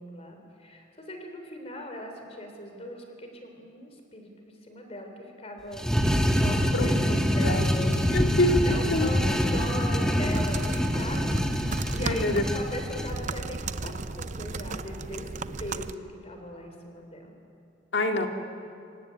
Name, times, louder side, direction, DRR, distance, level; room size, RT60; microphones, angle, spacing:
voice 1, 0.0-6.0 6.2-8.0 8.7-11.4 11.9-17.3, left 1 dB, 35° left, 4 dB, 3.5 m, -39 dB
sound 1, 5.7-13.1, equal, 5° left, 1.3 m, -25 dB
sound 2, 7.5-15.9, right 3 dB, 40° right, 0.6 m, -36 dB
voice 2, 8.1-8.7 8.9-9.1 12.0-12.4 17.9-18.3, left 1 dB, 70° left, 3 dB, 2.1 m, -25 dB
26.5 x 15.5 x 9.4 m, 2.5 s
head